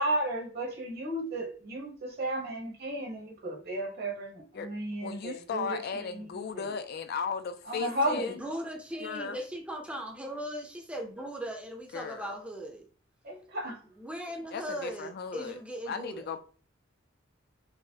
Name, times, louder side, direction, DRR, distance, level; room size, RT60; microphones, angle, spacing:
voice 1, 0.0-6.3 6.5-6.7 7.7-8.3 13.2-13.8, right 1 dB, 55° right, 1.0 m, -34 dB
voice 2, 5.0-8.4 9.0-9.4 11.9-12.4 14.5-15.6 15.9-16.4, left 6 dB, 55° left, 0.4 m, -36 dB
voice 3, 8.1-12.8 14.0-16.3, right 1 dB, 5° right, 0.5 m, -38 dB
4.7 x 2.0 x 2.7 m
head